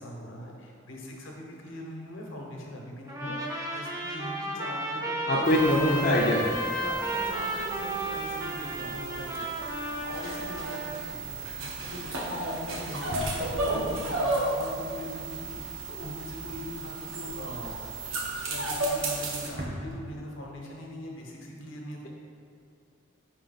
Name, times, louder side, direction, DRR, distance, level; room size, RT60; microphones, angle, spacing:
voice 1, 0.0-5.5 6.8-9.5 10.0-17.8 18.3-22.1, left 1 dB, 75° left, -1 dB, 1.0 m, -41 dB
Trumpet, 3.1-11.0, right 1 dB, 15° right, 0.5 m, -33 dB
voice 2, 5.3-6.5, left 1 dB, 45° left, -4 dB, 0.5 m, -23 dB
sound 1, 5.4-19.5, right 2 dB, 90° right, 0.9 m, -34 dB
Drawer open or close, 9.2-14.1 14.4-14.8 15.0-17.2 17.6-20.6 21.0-21.2 21.4-21.5, equal, 45° right, 0.8 m, -45 dB
5.5 x 4.4 x 4.0 m, 2.3 s
head